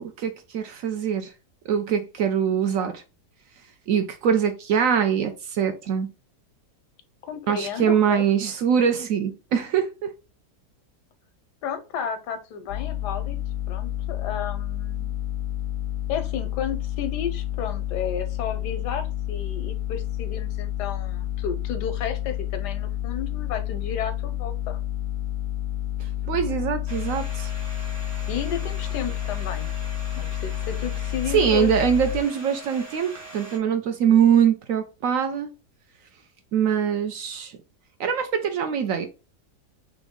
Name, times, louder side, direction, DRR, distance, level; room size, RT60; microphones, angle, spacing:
voice 1, 0.0-1.3 1.7-3.0 3.9-6.1 7.5-10.1 26.0-27.5 31.3-35.5 36.5-37.6 38.0-39.1, right 8 dB, 70° right, 0.8 m, -23 dB
voice 2, 7.3-8.2 11.6-13.4 13.7-15.2 16.1-24.8 26.4-26.7 28.3-29.7 30.2-31.7, left 7 dB, 85° left, 1.3 m, -32 dB
sound 1, 12.7-32.2, left 14 dB, 65° left, 0.8 m, -30 dB
Domestic sounds home sounds, 26.9-33.6, right 2 dB, 15° right, 0.6 m, -42 dB
3.5 x 3.1 x 3.6 m
omnidirectional pair, 1.7 m